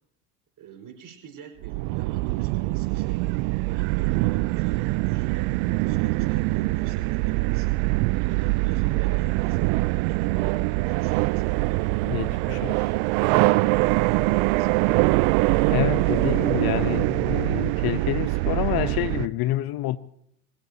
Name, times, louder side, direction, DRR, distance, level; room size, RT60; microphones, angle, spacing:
voice 1, 0.6-3.2 3.7-7.8 8.2-11.9 13.6-14.8, right 8 dB, 45° right, 5.4 m, -45 dB
sound 1, 1.6-19.3, right 22 dB, 65° right, 0.6 m, -23 dB
voice 2, 12.0-12.8 15.7-20.0, left 15 dB, 55° left, 1.1 m, -28 dB
24.5 x 16.5 x 2.9 m
hypercardioid pair, 75°, 44 cm